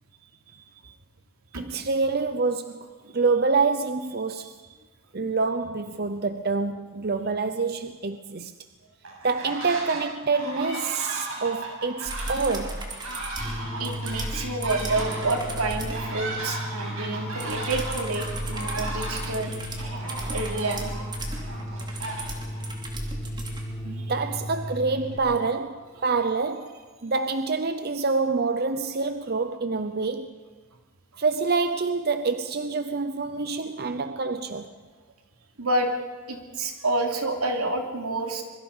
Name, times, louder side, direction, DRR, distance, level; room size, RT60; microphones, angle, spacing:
voice 1, 1.6-2.9 3.1-4.6 5.1-8.5 9.2-12.9 23.8-30.3 31.2-34.7, right 4 dB, 45° right, 0.7 m, -27 dB
sound 1, 9.0-10.0 10.3-22.6, right 2 dB, 70° right, 6.6 m, -36 dB
sound 2, 12.1-16.0 17.4-23.6 25.4-25.5, right 1 dB, 20° right, 2.8 m, -36 dB
sound 3, 13.4-25.2, equal, 5° left, 7.4 m, -35 dB
voice 2, 13.8-19.5 20.3-20.9 24.0-24.1 35.6-35.9 36.3-38.4, right 2 dB, 85° right, 3.1 m, -28 dB
26.0 x 23.0 x 5.6 m
head